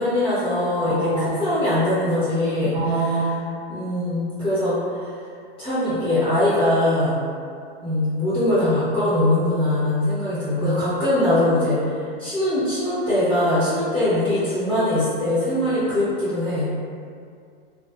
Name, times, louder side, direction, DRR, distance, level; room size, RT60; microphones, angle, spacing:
voice 1, 0.0-2.8 3.7-5.1 5.6-7.2 7.8-16.7, left 1 dB, 20° left, -12 dB, 1.0 m, -22 dB
voice 2, 0.8-1.4 2.6-3.4 10.6-10.8, right 3 dB, 40° right, -8 dB, 0.6 m, -25 dB
2.5 x 2.3 x 2.2 m, 2.3 s
supercardioid pair, 135°, 30 cm